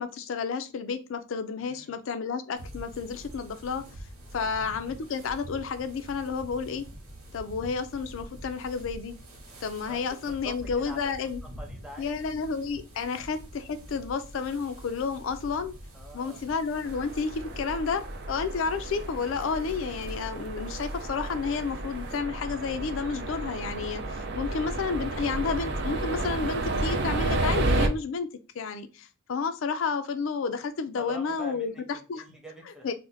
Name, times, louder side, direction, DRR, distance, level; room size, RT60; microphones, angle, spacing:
voice 1, 0.0-3.8 4.3-6.9 7.3-9.2 9.6-11.4 12.0-15.7 16.1-28.3 28.5-32.3 32.8-32.9, left 5 dB, 65° left, 0.4 m, -31 dB
voice 2, 1.6-2.0 4.3-4.6 9.9-12.1 15.9-16.4 31.0-32.9, equal, ahead, 0.6 m, -46 dB
sound 1, 2.5-22.2, right 1 dB, 90° right, 0.8 m, -46 dB
sound 2, 16.8-27.9, right 2 dB, 50° right, 0.4 m, -31 dB
2.5 x 2.1 x 3.8 m
head